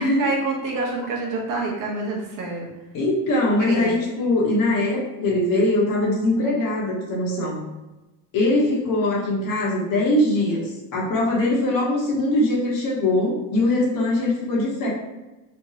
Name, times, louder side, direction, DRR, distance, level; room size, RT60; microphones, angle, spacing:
voice 1, 0.0-2.7 3.6-4.0, right 2 dB, 55° right, -1 dB, 0.9 m, -27 dB
voice 2, 2.9-7.6 8.3-14.9, left 1 dB, 55° left, -3 dB, 1.0 m, -22 dB
3.5 x 2.1 x 2.7 m, 1.0 s
cardioid pair, 140°, 39 cm